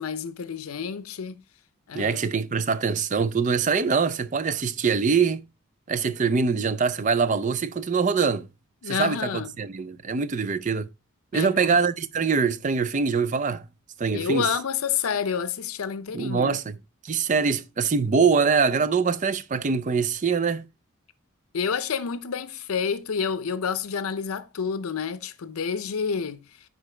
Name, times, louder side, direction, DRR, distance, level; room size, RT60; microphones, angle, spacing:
voice 1, 0.0-1.4 1.9-2.2 8.8-9.5 11.3-11.5 14.1-16.5 21.5-26.4, left 6 dB, 85° left, 0.5 m, -29 dB
voice 2, 1.9-5.4 5.9-8.5 8.9-10.9 11.3-13.7 14.0-14.5 16.1-16.8 17.0-20.6, right 5 dB, 35° right, 0.4 m, -24 dB
10.0 x 3.9 x 3.2 m
head